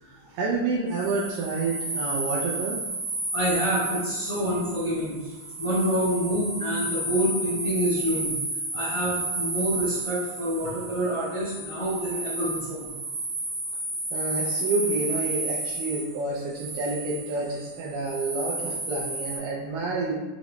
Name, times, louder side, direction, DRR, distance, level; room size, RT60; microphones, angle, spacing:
voice 1, 0.0-2.8 14.1-20.1, right 3 dB, 85° right, -5 dB, 1.9 m, -29 dB
sound 1, 0.9-19.4, right 2 dB, 60° right, 1.5 m, -32 dB
voice 2, 3.3-5.3 5.6-8.3 8.7-12.9, equal, 80° left, -12 dB, 0.9 m, -27 dB
5.9 x 2.1 x 2.9 m, 1.2 s
omnidirectional pair, 4.4 m